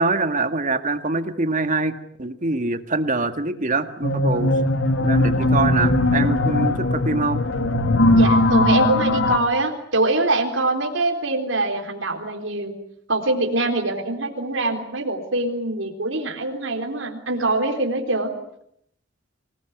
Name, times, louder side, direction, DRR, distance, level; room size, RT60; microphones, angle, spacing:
voice 1, 0.0-1.9 2.2-4.5 5.0-7.4, right 3 dB, 40° right, 8 dB, 1.9 m, -24 dB
sound 1, 4.0-9.4, left 2 dB, 80° left, 2.5 m, -19 dB
voice 2, 8.1-12.7 13.1-18.3, right 2 dB, 80° right, 3 dB, 3.8 m, -24 dB
26.5 x 19.5 x 9.4 m, 0.73 s
head